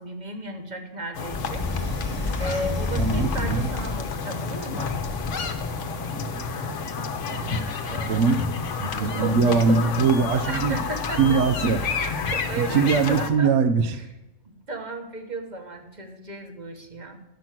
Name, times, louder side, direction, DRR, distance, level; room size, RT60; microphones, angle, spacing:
voice 1, 0.0-1.7 2.4-5.0 7.9-8.3 9.0-12.0 12.3-13.5 13.8-14.1 14.4-17.2, right 2 dB, 35° right, 5 dB, 1.2 m, -35 dB
sound 1, 1.1-13.3, left 5 dB, 65° left, 1.2 m, -30 dB
sound 2, 1.3-4.3 4.9-5.8, left 2 dB, 10° left, 1.5 m, -30 dB
voice 2, 3.0-3.7 6.1-7.7 8.1-8.4 8.8-10.8 11.2-11.8 12.6-13.9, right 5 dB, 65° right, 10 dB, 0.9 m, -23 dB
11.5 x 6.0 x 7.4 m, 0.96 s
omnidirectional pair, 1.4 m